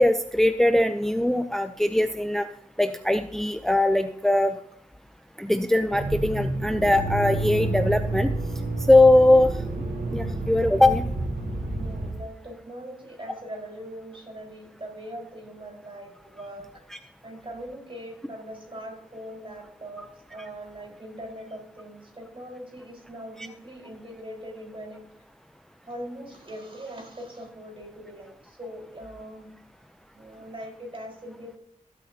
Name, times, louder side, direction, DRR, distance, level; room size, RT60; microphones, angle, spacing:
voice 1, 0.0-2.5 2.8-4.5 5.4-8.3 8.9-9.5 10.1-11.0 16.9-17.0, left 1 dB, 5° left, 9 dB, 0.6 m, -20 dB
Accelerating revving vroom, 5.9-12.1, right 2 dB, 85° right, 2.9 m, -29 dB
voice 2, 11.7-16.7 17.2-25.0 25.8-29.5 30.1-31.6, equal, 40° right, 0 dB, 4.8 m, -41 dB
17.0 x 8.2 x 2.9 m, 0.69 s
cardioid pair, 60°, 14 cm